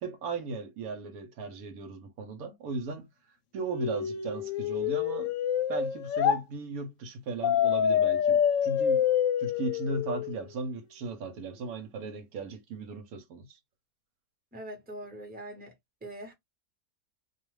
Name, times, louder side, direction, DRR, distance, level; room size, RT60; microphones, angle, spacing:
voice 1, 0.0-3.1 3.5-5.3 5.7-9.1 9.4-13.6, right 3 dB, 80° right, 1.1 m, -37 dB
sound 1, 3.6-6.4 7.4-10.4, left 9 dB, 70° left, 0.9 m, -27 dB
voice 2, 14.5-15.8 16.0-16.3, right 1 dB, 10° right, 0.8 m, -42 dB
2.4 x 2.3 x 3.1 m
omnidirectional pair, 1.5 m